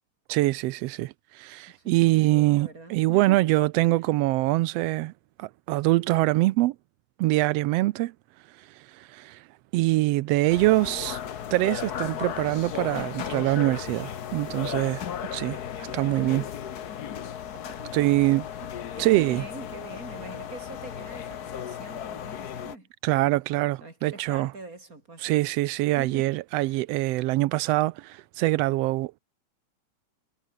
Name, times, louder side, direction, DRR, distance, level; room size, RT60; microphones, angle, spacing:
voice 1, 0.3-5.1 5.4-6.7 7.2-8.1 8.6-9.4 9.7-11.2 11.5-15.0 15.3-16.5 17.9-18.4 19.0-19.4 23.0-24.5 25.2-29.2, right 18 dB, 80° right, 1.4 m, -24 dB
voice 2, 1.7-3.5 17.8-18.4 18.9-22.9 23.8-25.3 26.0-26.3 26.6-26.7, right 2 dB, 25° right, 5.6 m, -44 dB
sound 1, 10.5-22.8, left 9 dB, 80° left, 0.8 m, -35 dB
omnidirectional pair, 3.4 m